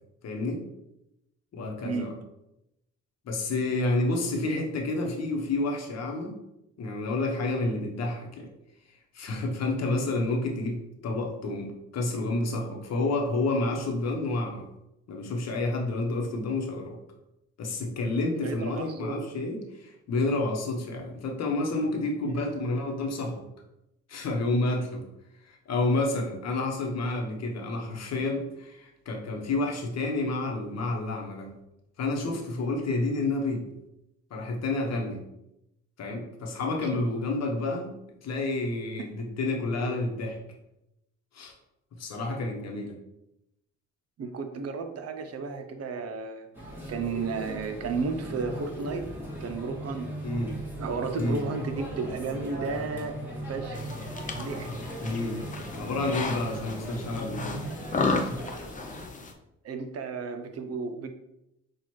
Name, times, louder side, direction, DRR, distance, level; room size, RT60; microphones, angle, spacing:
voice 1, 0.2-0.6 1.5-2.1 3.2-6.3 6.8-8.5 9.1-14.6 15.1-17.0 17.6-23.4 24.1-25.0 25.5-31.5 32.0-33.6 34.3-35.2 36.0-37.9 38.2-40.4 41.3-41.5 42.0-42.9 50.2-50.6 51.2-51.4 55.0-55.4 55.7-57.7, left 2 dB, 60° left, 2 dB, 1.0 m, -29 dB
voice 2, 1.8-2.2 18.4-19.2 22.2-22.4 36.8-37.2 39.0-39.1 44.2-46.5 46.9-49.1 49.4-50.1 50.8-53.2 53.4-53.9 54.4-54.7 59.6-61.1, right 4 dB, 55° right, 7 dB, 0.6 m, -33 dB
sound 1, 46.5-59.1, equal, 5° right, 1.5 m, -38 dB
sound 2, 53.7-59.3, left 3 dB, 25° left, 0.5 m, -34 dB
5.8 x 2.4 x 3.1 m, 0.87 s
cardioid pair, 90°, 30 cm